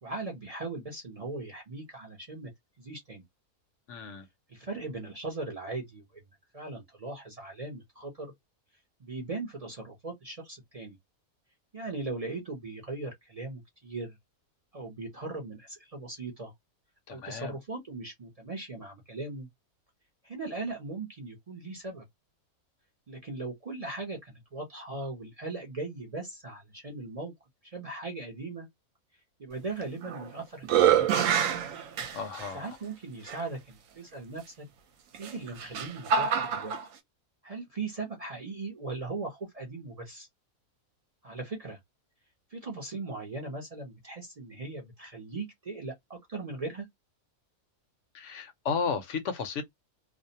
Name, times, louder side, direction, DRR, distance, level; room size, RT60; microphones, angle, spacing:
voice 1, 0.0-2.5 2.8-3.2 4.5-6.2 6.5-8.3 9.0-11.0 11.7-14.2 14.7-16.5 17.1-19.5 20.2-22.1 23.1-27.3 27.6-28.7 29.4-31.3 32.5-34.7 35.2-36.8 37.4-40.3 41.2-41.8 42.5-46.9, right 3 dB, 40° right, 0.5 m, -39 dB
voice 2, 3.9-4.2 17.1-17.5 32.1-32.6 48.1-49.6, left 5 dB, 65° left, 0.8 m, -33 dB
sound 1, 29.8-30.3 30.6-32.5 33.3-33.4 35.1-36.8, right 8 dB, 75° right, 1.0 m, -26 dB
2.5 x 2.0 x 2.6 m
omnidirectional pair, 1.5 m